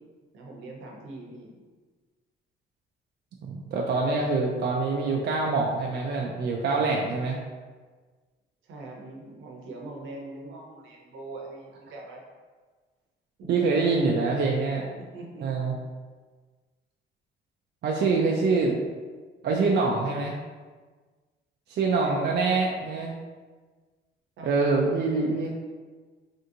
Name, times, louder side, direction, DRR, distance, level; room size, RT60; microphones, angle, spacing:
voice 1, 0.3-1.6 8.6-12.2 13.4-13.7 14.9-15.5 21.9-22.3 24.4-24.9, right 2 dB, 80° right, -2 dB, 0.8 m, -42 dB
voice 2, 3.4-7.4 13.5-14.9 15.4-15.7 17.8-18.8 19.4-20.4 21.7-23.1 24.4-25.5, right 3 dB, 55° right, -1 dB, 0.4 m, -25 dB
3.4 x 2.7 x 2.5 m, 1.4 s
cardioid pair, 90°, 20 cm